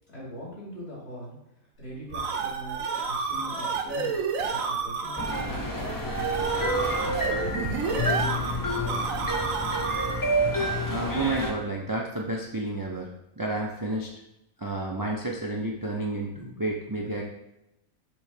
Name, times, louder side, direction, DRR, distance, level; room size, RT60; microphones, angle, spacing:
voice 1, 0.1-1.4 1.8-4.1 4.5-7.3 7.6-9.3, equal, 50° left, -6 dB, 3.1 m, -41 dB
Bot malfunction, 1.8-10.4, right 5 dB, 70° right, 1.1 m, -31 dB
sound 1, 5.2-11.5, equal, 25° left, 0.5 m, -28 dB
voice 2, 10.9-13.1 13.4-14.1 14.6-17.2, right 2 dB, 35° right, -1 dB, 0.3 m, -30 dB
6.9 x 3.1 x 5.0 m, 0.85 s
omnidirectional pair, 1.5 m